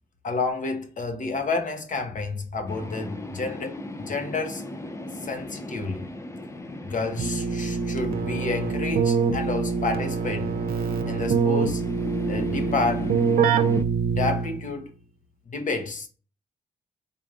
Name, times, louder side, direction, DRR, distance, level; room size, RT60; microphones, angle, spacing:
voice 1, 0.2-4.7 5.2-6.1 6.8-10.6 11.1-11.9 12.3-13.1 14.1-14.9 15.5-16.1, left 3 dB, 55° left, 1.1 m, -30 dB
sound 1, 2.7-13.8, left 2 dB, 20° left, 0.6 m, -38 dB
Keyboard (musical), 7.2-14.7, right 5 dB, 75° right, 0.6 m, -25 dB
4.4 x 3.3 x 2.5 m
cardioid pair, 70°, 16 cm